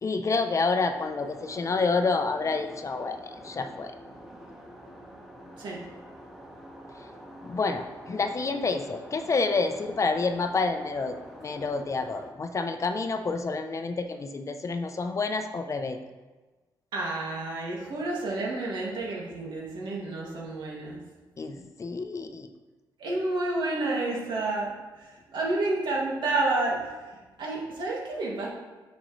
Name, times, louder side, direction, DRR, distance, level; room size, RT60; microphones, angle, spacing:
voice 1, 0.0-3.9 7.4-11.2 11.4-16.0 21.4-22.5, left 4 dB, 40° left, 7 dB, 0.6 m, -28 dB
sound 1, 0.7-12.3, equal, ahead, 1.7 m, -46 dB
voice 2, 16.9-21.0 23.0-26.9 27.4-28.5, right 2 dB, 70° right, -3 dB, 2.3 m, -30 dB
8.8 x 6.4 x 3.2 m, 1.2 s
cardioid pair, 85°, 8 cm